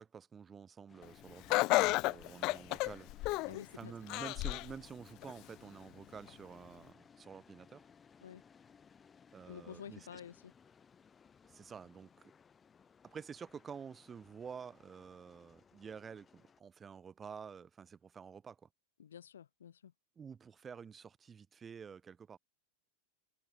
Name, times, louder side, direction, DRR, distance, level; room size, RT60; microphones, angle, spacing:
voice 1, 0.0-3.1 3.4-7.8 9.3-10.2 11.4-12.3 13.0-18.7 20.2-22.4, right 6 dB, 20° right, 2.2 m, -50 dB
sound 1, 0.9-16.6, left 6 dB, 20° left, 6.3 m, -63 dB
Laughter, 1.5-3.6 4.1-4.7 5.2-5.3 6.3-6.4, left 22 dB, 40° left, 0.5 m, -31 dB
voice 2, 3.5-3.9 8.2-8.4 9.5-10.5 19.0-19.9, left 8 dB, 65° left, 1.1 m, -50 dB
figure-of-eight pair, 90°, 0 cm